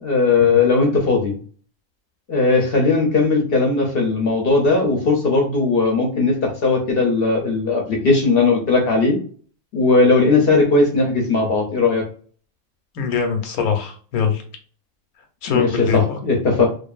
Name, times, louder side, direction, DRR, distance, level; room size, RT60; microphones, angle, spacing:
voice 1, 0.0-1.4 2.3-9.2 9.7-12.0 15.5-16.7, left 3 dB, 60° left, 0 dB, 0.6 m, -18 dB
voice 2, 12.9-14.4 15.4-16.2, left 6 dB, 85° left, 4 dB, 1.1 m, -22 dB
2.5 x 2.4 x 2.3 m, 0.43 s
omnidirectional pair, 1.5 m